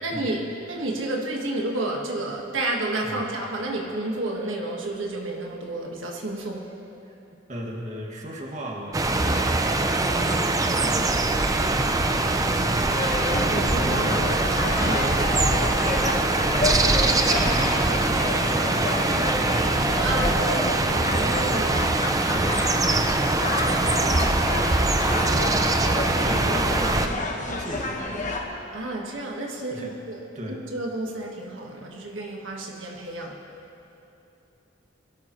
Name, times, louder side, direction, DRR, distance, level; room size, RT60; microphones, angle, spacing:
voice 1, 0.0-0.4 0.7-6.7 13.8-14.2 14.7-15.0 20.0-21.9 28.7-33.4, right 2 dB, 85° right, -1 dB, 1.5 m, -31 dB
voice 2, 7.5-9.7 10.1-11.1 11.5-13.2 13.8-14.3 14.7-16.1 16.5-18.6 20.0-20.4 22.3-23.3 23.6-24.5 25.0-27.3 27.6-28.2 29.7-29.9 30.3-30.6, equal, 40° right, -2 dB, 1.9 m, -36 dB
sound 1, 8.9-27.1, right 2 dB, 20° right, 0.6 m, -23 dB
sound 2, 12.9-28.4, left 2 dB, 40° left, 1.3 m, -30 dB
sound 3, 14.4-24.5, left 1 dB, 10° left, 2.1 m, -39 dB
23.0 x 13.0 x 3.1 m, 2.9 s
head